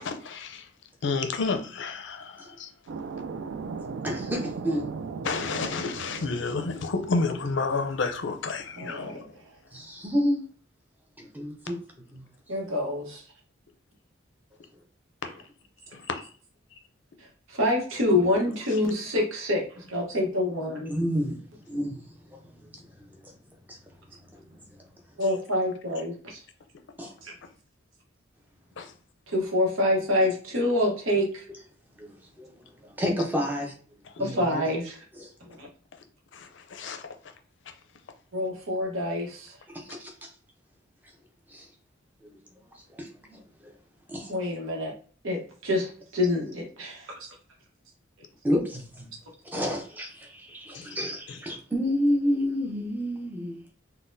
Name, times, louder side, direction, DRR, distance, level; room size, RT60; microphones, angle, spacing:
voice 1, 0.0-0.7 1.0-2.7 5.2-9.3 15.9-16.2 28.8-28.9 36.3-37.1 50.7-50.9 51.3-51.4, left 4 dB, 65° left, 0.5 m, -30 dB
sound 1, 2.9-9.2, right 5 dB, 65° right, 0.3 m, -38 dB
voice 2, 4.0-4.9 9.7-10.5 11.2-11.8 12.1-12.2 20.9-21.4 21.7-22.0 22.3-22.9 23.2-23.3 23.7-23.8 24.5-24.6 27.0-27.1 32.0-32.1 32.4-33.7 34.2-34.6 35.2-35.3 39.7-40.1 41.5-41.7 42.2-42.3 42.9-43.4 44.1-44.3 48.4-49.1 49.5-53.6, equal, 10° right, 0.5 m, -30 dB
voice 3, 8.8-9.2 12.5-13.2 17.5-20.9 25.2-26.4 27.2-27.3 29.3-31.4 34.2-35.0 35.5-35.7 38.3-39.5 44.3-44.9 45.2-47.1, left 1 dB, 80° right, 1.0 m, -27 dB
3.9 x 2.2 x 2.5 m
head